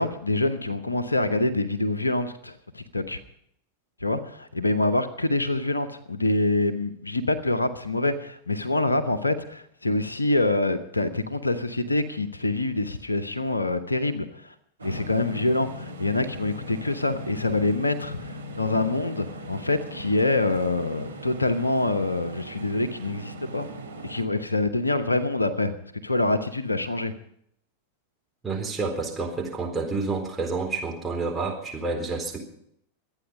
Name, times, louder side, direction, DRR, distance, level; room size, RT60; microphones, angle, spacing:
voice 1, 0.0-3.2 4.0-14.5 14.8-23.7 24.0-25.7 26.0-27.1, left 2 dB, 80° left, 12 dB, 1.0 m, -25 dB
sound 1, 14.8-24.3, equal, 75° right, 1.7 m, -39 dB
voice 2, 28.4-32.4, right 3 dB, 10° right, 0 dB, 4.1 m, -29 dB
24.5 x 9.1 x 5.3 m, 0.69 s
figure-of-eight pair, 90°, 0 cm